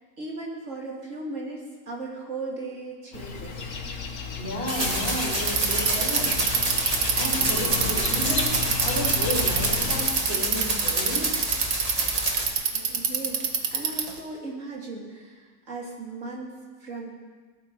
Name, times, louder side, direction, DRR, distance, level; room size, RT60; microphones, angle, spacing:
voice 1, 0.2-3.7 12.9-16.5 16.8-17.1, right 3 dB, 50° right, -2 dB, 3.0 m, -37 dB
sound 1, 3.1-10.1, left 4 dB, 55° left, 1.6 m, -33 dB
voice 2, 4.4-11.4 12.7-12.8, left 1 dB, 40° left, -4 dB, 3.4 m, -33 dB
sound 2, 4.7-12.5, right 1 dB, 25° right, 1.8 m, -29 dB
Bicycle, 5.4-14.2, right 6 dB, 75° right, 1.7 m, -25 dB
18.5 x 12.0 x 4.8 m, 1.4 s
omnidirectional pair, 1.7 m